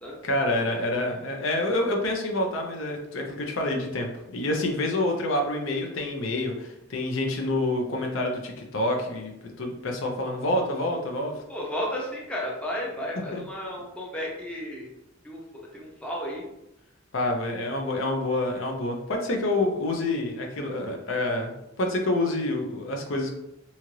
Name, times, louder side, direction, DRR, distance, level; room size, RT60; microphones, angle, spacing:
voice 1, 0.2-11.4 13.3-13.4 17.1-23.3, left 1 dB, 80° left, 2 dB, 0.6 m, -27 dB
voice 2, 11.5-14.9 15.2-15.4 15.7-16.4, equal, 5° left, -3 dB, 0.6 m, -33 dB
2.8 x 2.4 x 3.0 m, 0.88 s
head